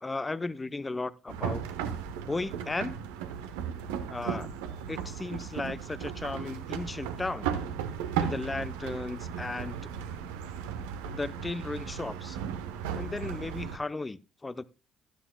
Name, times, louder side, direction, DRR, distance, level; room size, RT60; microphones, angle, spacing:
voice 1, 0.0-1.6 2.3-3.0 4.1-4.5 4.9-7.5 8.2-9.9 11.1-12.4 13.0-14.6, left 3 dB, 25° left, 0.7 m, -35 dB
sound 1, 1.3-13.8, right 8 dB, 75° right, 1.0 m, -36 dB
14.5 x 13.0 x 2.3 m
hypercardioid pair, 45°, 0 cm